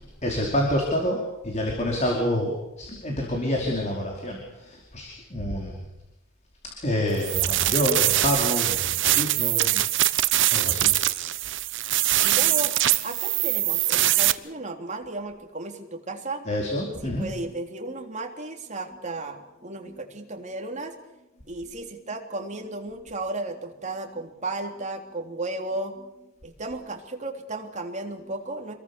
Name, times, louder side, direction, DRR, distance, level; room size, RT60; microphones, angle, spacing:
voice 1, 0.2-5.8 6.8-9.8 10.2-10.9 16.5-17.3, left 1 dB, 35° left, 0 dB, 4.8 m, -27 dB
sound 1, 7.2-14.3, right 15 dB, 60° right, 0.9 m, -23 dB
voice 2, 12.2-12.7 13.0-16.4 17.0-20.9 21.5-26.0 26.4-28.7, right 2 dB, 35° right, 3 dB, 3.5 m, -34 dB
28.5 x 22.5 x 7.2 m, 0.95 s
head